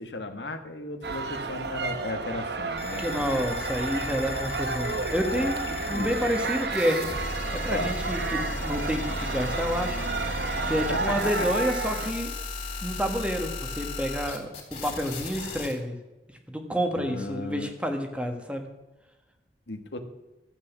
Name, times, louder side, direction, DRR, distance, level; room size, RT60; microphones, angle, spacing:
voice 1, 0.0-3.4 5.3-6.4 7.7-8.0 10.9-11.5 16.9-17.7 19.7-20.0, left 2 dB, 90° left, 7 dB, 1.6 m, -35 dB
sound 1, 1.0-12.1, right 3 dB, 70° right, 1.2 m, -32 dB
sound 2, 2.8-15.7, left 3 dB, 35° left, 3.4 m, -36 dB
voice 2, 3.0-7.0 7.5-10.0 10.3-12.3 12.8-16.0 16.5-18.7, equal, 5° right, 5 dB, 1.4 m, -29 dB
13.0 x 8.2 x 7.3 m, 1.1 s
head